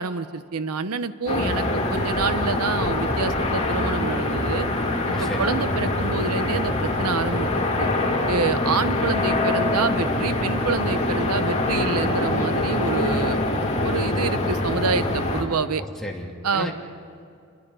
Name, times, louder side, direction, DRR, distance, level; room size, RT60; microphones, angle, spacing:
voice 1, 0.0-4.7 5.2-7.5 7.8-7.9 8.3-13.4 13.8-15.8 16.4-16.7, right 4 dB, 85° right, 13 dB, 0.9 m, -27 dB
sound 1, 1.3-15.4, left 2 dB, 30° left, 2.8 m, -24 dB
voice 2, 5.1-5.6 15.8-16.7, equal, ahead, -2 dB, 2.5 m, -33 dB
28.5 x 22.5 x 5.6 m, 2.5 s
head